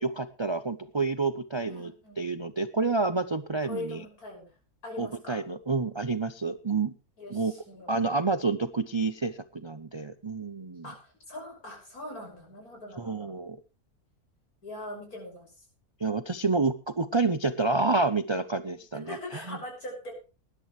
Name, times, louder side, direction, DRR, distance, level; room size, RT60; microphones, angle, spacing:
voice 1, 0.0-1.9 2.2-4.0 5.0-6.9 7.3-7.5 7.9-10.9 13.0-13.6 16.0-19.6, right 3 dB, 40° right, 11 dB, 0.4 m, -29 dB
voice 2, 1.6-2.3 3.6-4.5 4.8-5.4 7.2-7.9 10.8-13.3 14.6-15.5 18.7-20.1, left 1 dB, 70° left, 1 dB, 6.6 m, -42 dB
20.0 x 11.0 x 3.2 m, 0.32 s
omnidirectional pair, 1.6 m